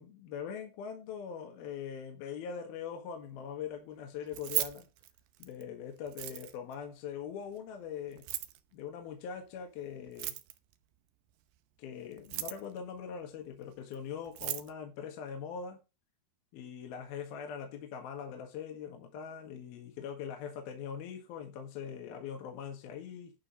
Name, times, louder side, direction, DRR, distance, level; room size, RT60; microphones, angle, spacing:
voice 1, 0.0-4.9 5.4-8.2 8.7-10.3 11.8-15.8 16.5-23.3, left 7 dB, 65° left, 3.3 m, -42 dB
Keys jangling, 4.2-5.6 6.1-6.7 8.1-8.6 10.1-10.7 12.1-12.8 13.9-14.0 14.3-14.7, right 14 dB, 85° right, 1.8 m, -36 dB
11.5 x 5.1 x 5.1 m
omnidirectional pair, 5.0 m